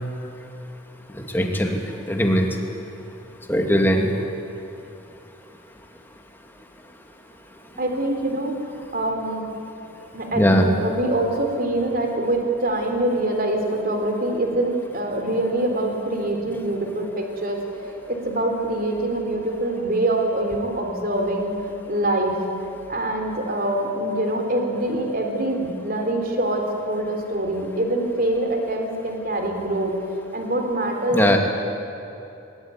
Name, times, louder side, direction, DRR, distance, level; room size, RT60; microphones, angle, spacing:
voice 1, 1.1-1.8 2.1-2.5 3.5-4.1 10.3-10.7 31.1-31.4, equal, 10° left, 2 dB, 2.5 m, -19 dB
voice 2, 7.8-9.5 10.1-21.5 21.9-22.4 22.9-29.9 30.3-31.4, right 1 dB, 45° right, 3 dB, 3.6 m, -24 dB
22.0 x 20.5 x 9.5 m, 2.9 s
head